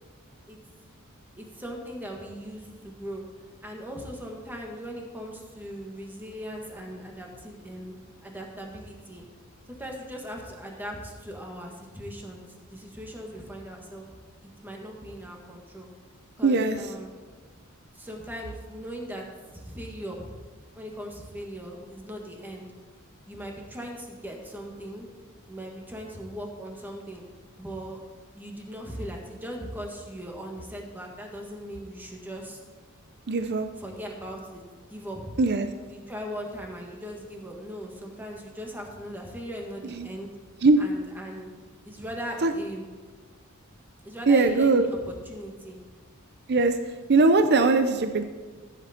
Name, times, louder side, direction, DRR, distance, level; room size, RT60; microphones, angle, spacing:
voice 1, 1.4-3.2 3.6-9.2 9.8-14.1 14.4-15.9 16.4-17.1 17.9-19.2 19.5-20.3 20.7-22.7 23.3-25.1 25.5-27.2 27.6-28.0 28.3-32.6 33.8-35.2 35.9-40.3 40.8-41.5 41.8-42.9 44.0-45.8, equal, 10° right, 0 dB, 1.7 m, -39 dB
voice 2, 16.4-16.8 33.3-33.7 35.4-35.7 39.9-40.1 40.6-40.8 42.4-42.5 44.3-44.9 46.5-46.8 47.1-48.2, right 3 dB, 50° right, 8 dB, 0.6 m, -20 dB
14.0 x 8.0 x 4.4 m, 1.4 s
head